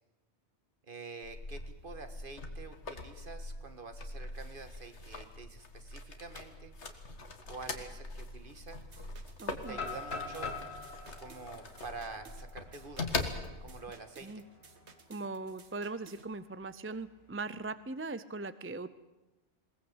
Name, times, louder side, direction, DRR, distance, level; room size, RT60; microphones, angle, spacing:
voice 1, 0.9-6.7 7.5-8.8 9.7-10.6 11.2-13.3 13.6-14.4, right 3 dB, 50° right, 8 dB, 1.8 m, -47 dB
sound 1, 1.2-13.8, left 3 dB, 85° left, 2.1 m, -42 dB
sound 2, 8.7-16.3, right 5 dB, 75° right, 1.8 m, -58 dB
voice 2, 9.4-9.8 14.2-14.4 15.1-18.9, right 3 dB, 15° right, 14 dB, 0.5 m, -40 dB
sound 3, 9.7-13.6 14.0-14.1 14.6-14.9 16.2-17.1, left 4 dB, 65° left, 2.5 m, -43 dB
21.5 x 19.0 x 8.1 m, 1.0 s
omnidirectional pair, 1.1 m